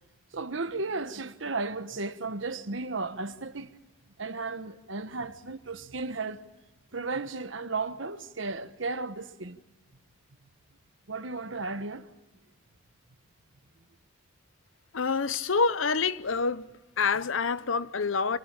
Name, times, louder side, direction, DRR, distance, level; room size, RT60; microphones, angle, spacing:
voice 1, 0.3-3.7 4.2-6.4 6.9-9.6 11.1-12.1, right 3 dB, 65° right, 1.3 m, -34 dB
voice 2, 14.9-16.7 17.0-18.4, left 5 dB, 70° left, 0.8 m, -27 dB
26.5 x 19.0 x 8.7 m
head